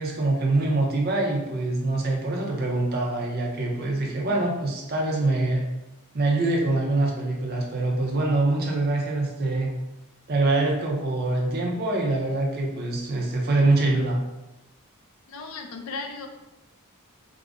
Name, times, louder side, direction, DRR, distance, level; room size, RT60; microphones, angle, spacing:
voice 1, 0.0-5.7 6.1-9.7 10.3-14.2, right 2 dB, 45° right, -1 dB, 0.6 m, -24 dB
voice 2, 15.3-16.3, left 4 dB, 70° left, 4 dB, 0.4 m, -35 dB
4.8 x 2.1 x 2.5 m, 0.98 s
head